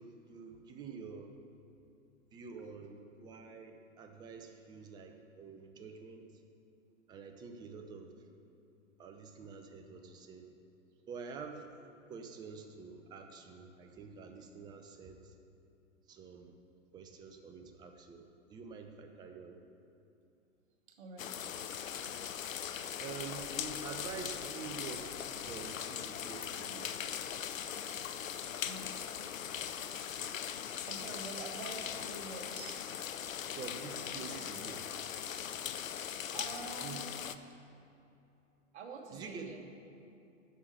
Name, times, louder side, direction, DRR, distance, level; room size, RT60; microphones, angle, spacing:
voice 1, 0.0-1.3 2.3-6.3 7.1-8.1 9.0-10.5 11.1-11.7 12.1-15.3 16.1-16.6 16.9-19.6 23.0-26.9 33.6-34.8 36.8-37.1 39.1-39.6, right 5 dB, 10° right, 5 dB, 0.4 m, -47 dB
voice 2, 20.9-21.5 28.6-29.0 30.8-32.9 33.9-34.8 36.3-37.0 38.7-39.6, right 3 dB, 55° right, 3 dB, 1.5 m, -47 dB
sound 1, 21.2-37.4, left 8 dB, 80° left, 0.6 m, -40 dB
8.0 x 6.1 x 7.5 m, 2.8 s
figure-of-eight pair, 110°, 39 cm